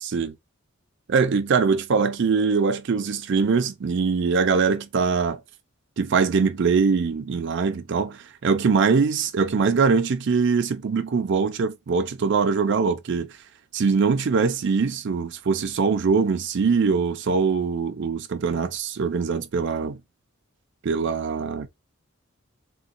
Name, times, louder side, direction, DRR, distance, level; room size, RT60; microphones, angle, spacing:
voice 1, 0.0-0.3 1.1-5.4 6.0-13.4 13.7-20.0 20.8-21.7, right 5 dB, 60° right, 0.4 m, -22 dB
3.9 x 2.2 x 2.5 m
head